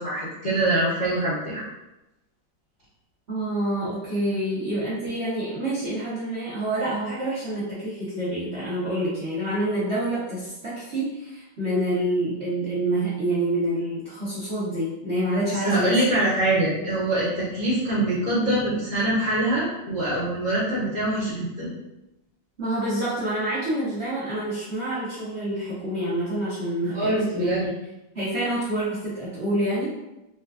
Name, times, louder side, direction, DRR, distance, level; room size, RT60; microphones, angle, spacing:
voice 1, 0.0-1.6 15.5-21.7 26.9-27.7, right 1 dB, 90° left, -10 dB, 0.4 m, -24 dB
voice 2, 3.3-16.0 22.6-27.7 28.1-29.9, right 1 dB, 60° right, -11 dB, 0.7 m, -27 dB
4.2 x 2.3 x 2.4 m, 0.95 s
omnidirectional pair, 2.3 m